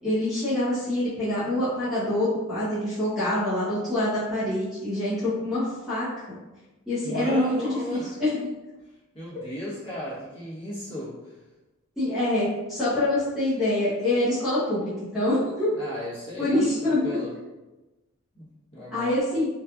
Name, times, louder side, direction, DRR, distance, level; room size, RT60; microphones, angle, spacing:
voice 1, 0.0-6.1 6.9-7.5 7.9-8.4 12.0-15.7 16.4-17.2 18.9-19.5, left 1 dB, ahead, -12 dB, 0.8 m, -25 dB
voice 2, 7.0-8.2 9.1-11.4 15.7-17.3 18.3-18.5 18.7-19.1, left 1 dB, 25° left, -10 dB, 1.0 m, -35 dB
2.9 x 2.4 x 2.4 m, 1.1 s
head